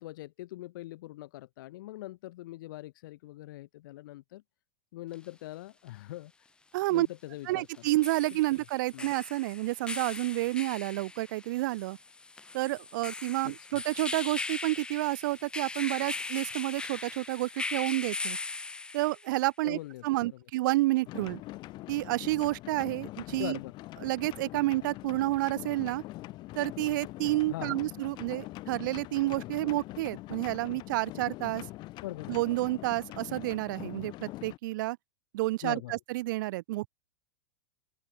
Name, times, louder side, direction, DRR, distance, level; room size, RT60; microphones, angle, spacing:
voice 1, 0.0-4.4 4.9-6.5 6.9-7.7 8.9-9.1 13.4-13.7 19.6-20.4 23.4-23.7 27.5-27.9 32.0-32.4 35.6-36.0, left 16 dB, 65° left, 3.2 m, -42 dB
sound 1, 5.1-5.2 7.7-19.3, left 3 dB, 10° left, 0.6 m, -39 dB
voice 2, 6.7-7.1 7.5-12.0 12.5-18.4 18.9-21.4 21.9-23.6 24.0-26.0 26.5-31.6 32.3-35.0 35.3-36.9, right 19 dB, 65° right, 1.1 m, -30 dB
sound 2, 21.1-34.6, left 18 dB, 40° left, 4.7 m, -43 dB
open air
supercardioid pair, 130°, 12 cm